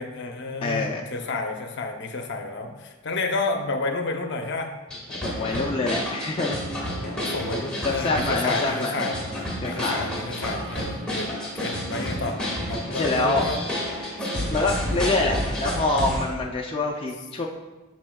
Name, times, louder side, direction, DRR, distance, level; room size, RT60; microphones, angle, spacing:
voice 1, 0.0-4.7 5.1-5.6 6.9-9.2 9.6-12.4 12.7-13.6 14.4-14.6, left 3 dB, 60° left, 4 dB, 0.7 m, -31 dB
voice 2, 0.6-1.1 5.1-6.6 7.8-9.0 9.6-10.0 12.9-13.4 14.5-17.5, left 3 dB, 25° left, 0 dB, 0.4 m, -26 dB
sound 1, 4.9-16.3, equal, 5° left, 1.6 m, -30 dB
12.5 x 4.3 x 2.3 m, 1.2 s
head